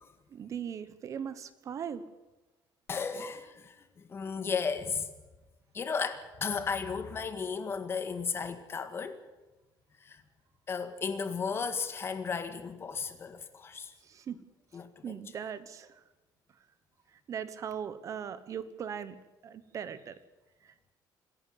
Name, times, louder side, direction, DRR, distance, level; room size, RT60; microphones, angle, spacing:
voice 1, 0.3-2.0 14.0-14.4 15.0-16.0 17.1-19.2 19.4-20.2 20.6-20.7, right 8 dB, 40° right, 1.2 m, -39 dB
voice 2, 2.9-5.1 5.7-9.2 10.1-10.2 10.7-13.9 14.7-15.2, left 5 dB, 30° left, 1.8 m, -34 dB
26.5 x 11.0 x 9.7 m
cardioid pair, 155°, 8 cm